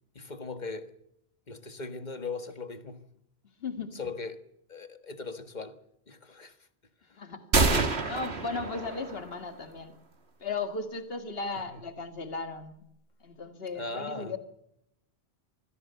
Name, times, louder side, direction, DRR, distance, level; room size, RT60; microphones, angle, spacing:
voice 1, 0.2-0.9 1.5-3.1 3.9-4.4 4.7-5.8 6.1-6.5 11.5-11.8 13.8-14.4, left 3 dB, 45° left, 1.7 m, -39 dB
voice 2, 3.6-4.0 7.2-7.5 8.0-10.0 10.4-12.8 13.2-14.4, left 4 dB, 65° left, 2.2 m, -36 dB
sound 1, 7.5-9.4, right 3 dB, 75° right, 2.3 m, -27 dB
24.5 x 16.5 x 6.9 m
omnidirectional pair, 1.1 m